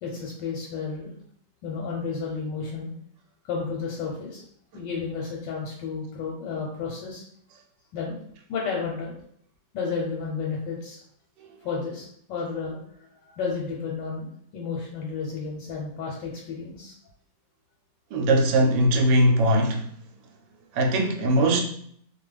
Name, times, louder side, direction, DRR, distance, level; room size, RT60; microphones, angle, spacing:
voice 1, 0.0-1.1 1.6-2.9 3.4-4.4 4.7-7.2 7.9-8.2 8.5-9.1 9.7-11.0 11.6-12.8 13.1-14.3 14.5-16.9, left 5 dB, 90° left, 1.3 m, -32 dB
voice 2, 18.1-19.9 20.7-21.6, right 1 dB, 80° right, 1.2 m, -20 dB
2.8 x 2.3 x 3.3 m
omnidirectional pair, 1.9 m